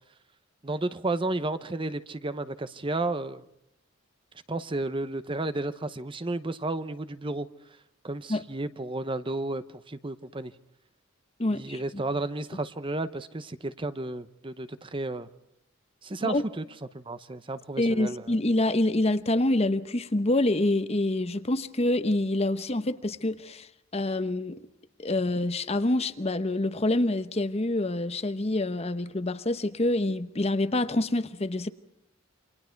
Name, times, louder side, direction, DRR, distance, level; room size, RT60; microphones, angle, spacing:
voice 1, 0.6-3.4 4.5-7.5 8.0-10.5 11.5-15.3 16.0-16.6 16.9-18.3, right 2 dB, 25° right, 0.8 m, -32 dB
voice 2, 11.4-12.0 16.2-16.4 17.8-23.7 23.9-24.6 25.0-31.7, left 1 dB, 30° left, 0.9 m, -26 dB
28.5 x 25.5 x 4.6 m
head